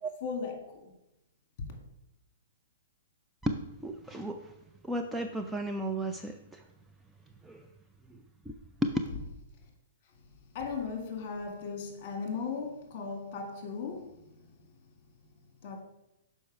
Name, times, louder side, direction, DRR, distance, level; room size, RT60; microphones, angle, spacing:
voice 1, 0.2-0.9 1.6-1.7 10.5-14.5 15.6-15.8, left 5 dB, 40° left, 1.9 m, -37 dB
voice 2, 3.4-4.4 4.8-6.6 7.4-7.6 8.5-8.6 8.8-8.9, right 1 dB, 5° right, 0.4 m, -34 dB
6.3 x 5.4 x 4.7 m
hypercardioid pair, 150°, 0 cm